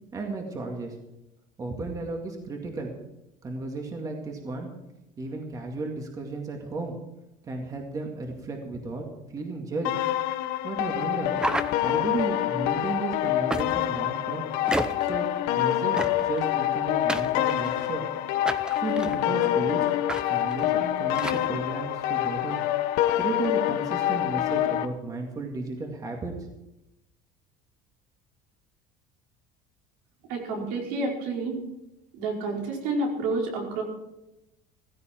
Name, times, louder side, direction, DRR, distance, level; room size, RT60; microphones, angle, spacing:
voice 1, 0.1-1.0 1.6-2.9 3.4-4.7 5.2-7.0 7.4-9.9 10.6-11.4 11.8-14.5 15.0-18.1 18.8-19.9 20.3-22.6 23.2-26.3, right 3 dB, 20° right, 2 dB, 2.1 m, -34 dB
sound 1, 9.8-24.9, left 13 dB, 75° left, 1.1 m, -26 dB
sound 2, 11.4-12.2 13.5-14.0 14.7-15.2 16.0-16.4 17.1-17.9 18.5-19.2 20.1-20.2 20.5-20.6 21.1-21.5, right 1 dB, 5° right, 0.6 m, -31 dB
voice 2, 30.3-31.6 32.2-33.8, right 2 dB, 85° right, -1 dB, 5.1 m, -29 dB
16.0 x 15.5 x 4.5 m, 0.91 s
cardioid pair, 170°, 15 cm